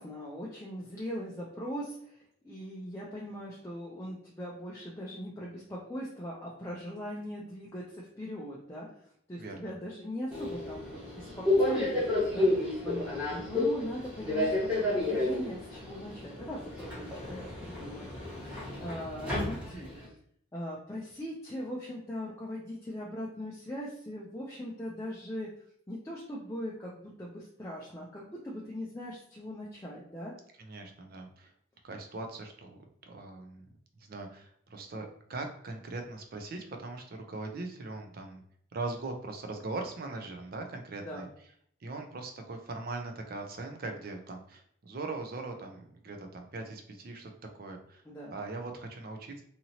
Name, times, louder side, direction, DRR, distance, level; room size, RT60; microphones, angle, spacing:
voice 1, 0.0-2.2 2.4-8.9 9.3-11.3 11.5-19.9 20.5-25.5 25.9-26.9 27.2-30.3 41.0-41.2 48.1-48.3, equal, 15° left, -5 dB, 0.4 m, -40 dB
voice 2, 9.4-9.7 30.6-31.5 31.8-32.8 33.1-33.7 34.1-38.4 38.7-41.3 41.8-48.0 48.3-49.4, right 3 dB, 45° right, 4 dB, 0.4 m, -40 dB
Subway metro underground, 10.3-20.1, left 2 dB, 5° right, 1.0 m, -31 dB
2.8 x 2.7 x 2.7 m, 0.66 s
head